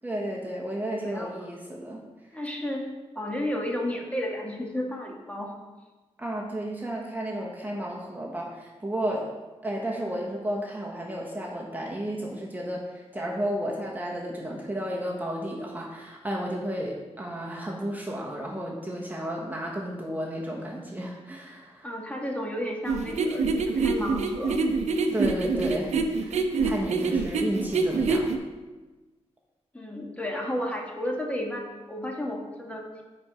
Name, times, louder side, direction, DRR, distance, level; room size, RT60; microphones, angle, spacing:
voice 1, 0.0-2.0 6.2-9.3 9.6-21.9 25.1-28.3, right 1 dB, 15° right, -2 dB, 1.3 m, -32 dB
voice 2, 2.3-2.9 3.1-5.5 21.8-24.6 27.0-27.4 29.7-33.0, left 1 dB, 10° left, -1 dB, 1.6 m, -32 dB
sound 1, 22.9-28.4, right 4 dB, 80° right, 0.6 m, -25 dB
8.7 x 4.4 x 5.2 m, 1.2 s
cardioid pair, 65°, 12 cm